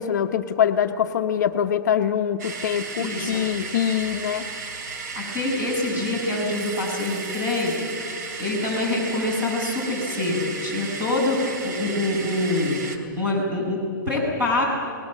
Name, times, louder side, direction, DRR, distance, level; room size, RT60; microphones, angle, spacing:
voice 1, 0.0-4.5, left 9 dB, 55° left, 6 dB, 0.9 m, -24 dB
sound 1, 2.4-13.0, right 4 dB, 50° right, 2.7 m, -34 dB
voice 2, 3.0-3.3 5.1-7.8 8.4-14.6, left 2 dB, 15° right, -3 dB, 6.7 m, -25 dB
29.0 x 20.0 x 7.5 m, 2.3 s
hypercardioid pair, 165°, 11 cm